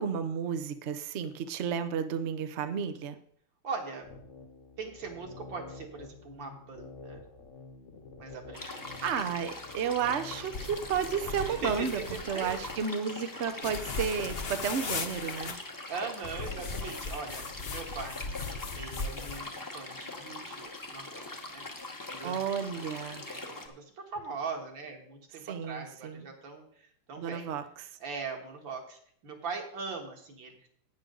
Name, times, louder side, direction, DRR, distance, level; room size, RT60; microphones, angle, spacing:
voice 1, 0.0-3.1 9.0-12.0 12.3-15.6 22.2-23.2 25.4-26.2 27.2-27.6, right 7 dB, 80° right, 9 dB, 0.6 m, -32 dB
voice 2, 3.6-4.1 4.8-7.2 8.2-9.1 11.4-12.7 15.9-21.7 22.1-22.8 23.2-27.5 28.0-30.7, right 4 dB, 60° right, 2 dB, 2.5 m, -41 dB
sound 1, 4.0-12.2, left 3 dB, 45° left, 1.1 m, -48 dB
sound 2, 8.5-23.7, left 2 dB, 25° left, 0.4 m, -42 dB
sound 3, 10.5-12.8 13.6-15.5 16.2-19.5, left 4 dB, 85° left, 0.5 m, -38 dB
11.0 x 9.1 x 3.9 m, 0.63 s
omnidirectional pair, 2.4 m